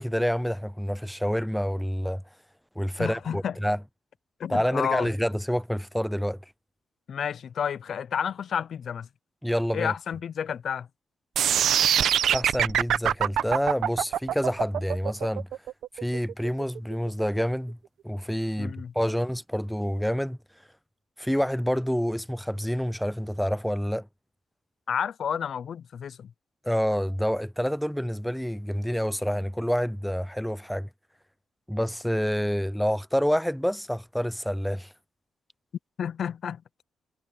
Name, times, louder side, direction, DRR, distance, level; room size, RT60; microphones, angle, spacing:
voice 1, 0.0-2.2 2.8-3.8 4.5-6.4 9.4-9.9 12.3-15.5 16.0-17.8 18.0-20.4 21.2-24.1 26.6-30.9 31.7-34.9, equal, ahead, 0.4 m, -28 dB
voice 2, 3.0-3.6 4.4-5.1 7.1-9.1 9.7-10.9 18.6-18.9 24.9-26.3 36.0-36.6, left 8 dB, 60° left, 0.5 m, -30 dB
sound 1, 11.4-17.4, right 10 dB, 75° right, 0.8 m, -24 dB
cardioid pair, 100°, 0 cm